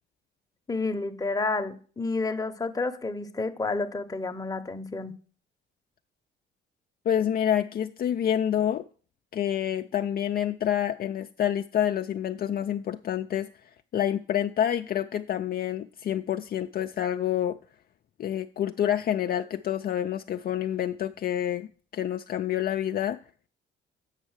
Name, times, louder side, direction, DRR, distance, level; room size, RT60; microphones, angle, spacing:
voice 1, 0.7-5.1, left 3 dB, 20° left, 0.8 m, -30 dB
voice 2, 7.1-8.8 9.3-13.5 13.9-17.6 18.2-21.7 21.9-23.2, left 10 dB, 50° left, 0.4 m, -28 dB
8.1 x 5.3 x 6.4 m
cardioid pair, 90°, 20 cm